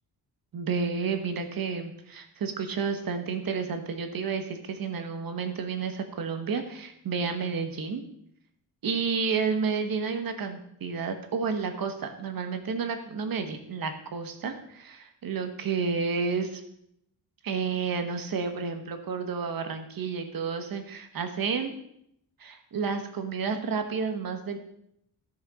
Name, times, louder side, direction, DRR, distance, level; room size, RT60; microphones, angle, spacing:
voice 1, 0.5-8.0 8.8-16.6 17.4-21.7 22.4-24.6, right 5 dB, 60° right, 7 dB, 1.4 m, -31 dB
14.0 x 6.4 x 4.9 m, 0.74 s
wide cardioid pair, 170°, 39 cm